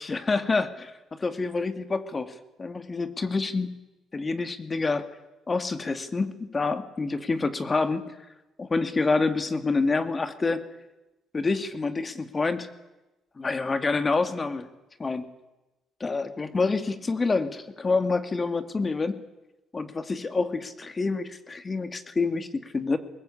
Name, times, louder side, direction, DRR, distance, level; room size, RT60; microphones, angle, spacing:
voice 1, 0.0-3.8 4.1-5.0 5.5-8.2 8.6-10.6 11.3-12.7 13.4-14.7 15.0-15.3 16.0-19.2 19.7-23.0, left 3 dB, 30° left, 9 dB, 2.1 m, -27 dB
21.0 x 19.5 x 8.6 m, 1.0 s
supercardioid pair, 75°, 0 cm